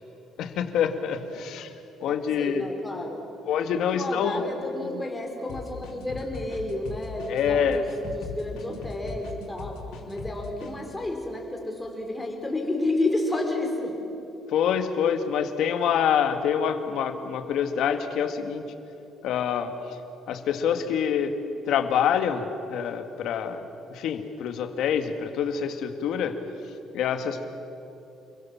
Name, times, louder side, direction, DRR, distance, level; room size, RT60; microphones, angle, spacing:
voice 1, 0.4-1.7 2.0-2.6 3.5-4.4 7.3-7.8 14.5-18.7 19.2-19.7 20.3-21.4 21.7-23.6 23.9-26.4 26.9-27.5, left 8 dB, 65° left, 7 dB, 1.9 m, -26 dB
voice 2, 2.1-3.2 3.7-9.8 10.1-14.0, left 2 dB, 10° left, 1 dB, 3.9 m, -31 dB
sound 1, 5.5-10.7, left 4 dB, 85° left, 4.4 m, -39 dB
29.0 x 22.5 x 7.4 m, 2.9 s
cardioid pair, 160°, 0 cm